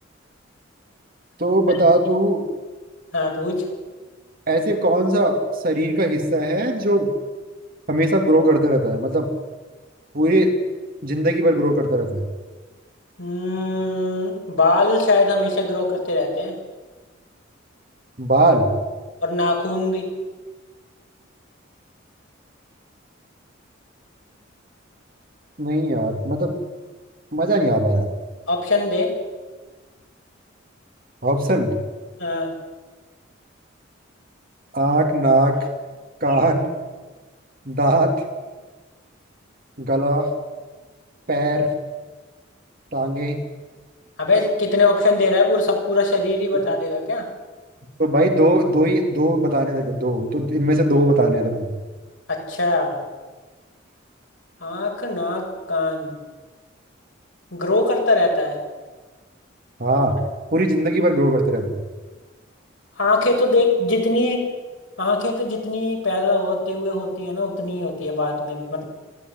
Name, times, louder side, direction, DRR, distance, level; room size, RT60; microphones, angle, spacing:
voice 1, 1.4-2.4 4.5-7.1 7.9-9.3 10.1-10.5 11.0-12.2 18.2-18.7 25.6-26.5 27.3-28.1 31.2-31.7 34.7-35.6 36.2-36.7 37.7-38.2 39.8-40.3 41.3-41.7 42.9-43.4 48.0-51.7 59.8-60.2 60.5-61.7, right 1 dB, 45° right, 3 dB, 3.0 m, -19 dB
voice 2, 3.1-3.7 13.2-16.6 19.2-20.1 28.5-29.1 32.2-32.5 44.2-47.3 52.3-53.0 54.6-56.1 57.5-58.6 63.0-64.4 65.0-68.8, left 2 dB, 75° left, 0 dB, 6.6 m, -21 dB
21.0 x 15.0 x 9.9 m, 1.3 s
head